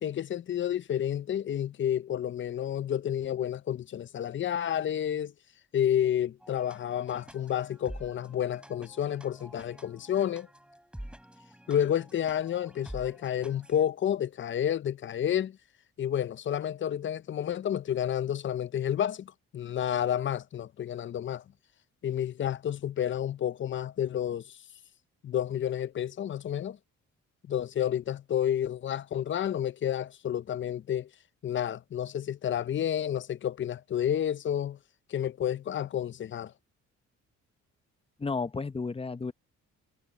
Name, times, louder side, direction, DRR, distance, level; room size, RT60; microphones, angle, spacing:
voice 1, 0.0-5.3 5.7-10.5 11.7-15.6 16.0-21.4 22.0-24.6 25.2-26.8 27.5-31.1 31.4-34.8 35.1-36.5, left 10 dB, 40° left, 0.5 m, -30 dB
sound 1, 6.4-13.8, equal, 5° right, 3.0 m, -48 dB
voice 2, 38.2-39.3, left 4 dB, 20° left, 0.9 m, -32 dB
cardioid pair, 90°, 30 cm